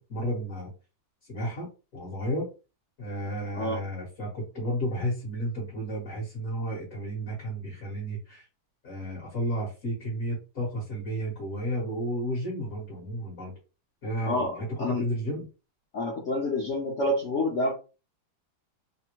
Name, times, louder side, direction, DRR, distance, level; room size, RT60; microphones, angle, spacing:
voice 1, 0.1-0.7 1.3-2.5 3.0-8.5 8.8-13.5 14.0-15.4, equal, 45° left, -4 dB, 1.4 m, -32 dB
voice 2, 15.9-17.7, left 1 dB, 65° left, -2 dB, 0.7 m, -28 dB
3.4 x 2.1 x 2.9 m, 0.31 s
omnidirectional pair, 2.1 m